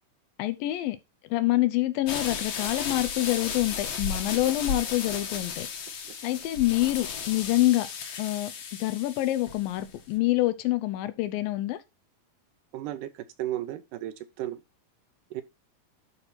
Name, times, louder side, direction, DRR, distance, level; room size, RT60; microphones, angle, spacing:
voice 1, 0.4-1.0 1.3-5.7 6.2-7.9 8.2-8.5 8.8-11.8, left 16 dB, 90° left, 2.6 m, -26 dB
sound 1, 2.1-10.0, left 6 dB, 55° left, 2.1 m, -34 dB
voice 2, 12.7-13.1 13.4-14.6 15.3-15.4, right 13 dB, 75° right, 2.3 m, -34 dB
11.5 x 4.5 x 4.2 m
omnidirectional pair, 4.0 m